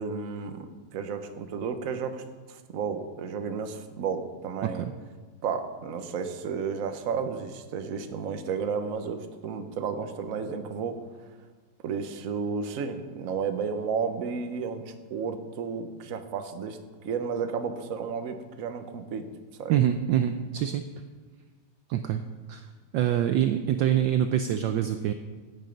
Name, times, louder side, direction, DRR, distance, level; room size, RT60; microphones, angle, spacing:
voice 1, 0.0-4.8 5.4-11.0 11.8-19.3 19.5-19.8, right 6 dB, 50° right, 8 dB, 1.1 m, -32 dB
voice 2, 19.7-20.8 21.9-22.2 22.5-22.7 22.9-25.1, right 10 dB, 75° right, 9 dB, 1.1 m, -25 dB
16.0 x 8.2 x 5.3 m, 1.4 s
omnidirectional pair, 2.4 m